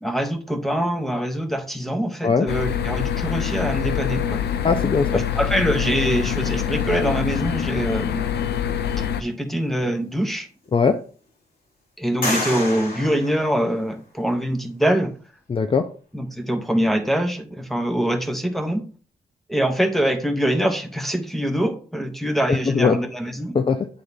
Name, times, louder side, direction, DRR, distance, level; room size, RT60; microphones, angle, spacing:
voice 1, 0.0-4.4 5.1-8.2 9.2-10.5 12.0-15.1 16.1-18.8 19.5-23.6, right 1 dB, ahead, 5 dB, 1.2 m, -24 dB
sound 1, 2.5-9.2, left 9 dB, 80° left, 0.6 m, -25 dB
voice 2, 4.6-5.2 10.7-11.0 15.5-15.9 22.5-23.0 23.5-23.9, left 5 dB, 30° left, 7 dB, 0.5 m, -20 dB
sound 2, 9.9-10.0 10.6-11.3 12.2-14.2, left 2 dB, 55° left, 3.7 m, -30 dB
9.5 x 3.8 x 3.6 m, 0.40 s
wide cardioid pair, 115°, 17 cm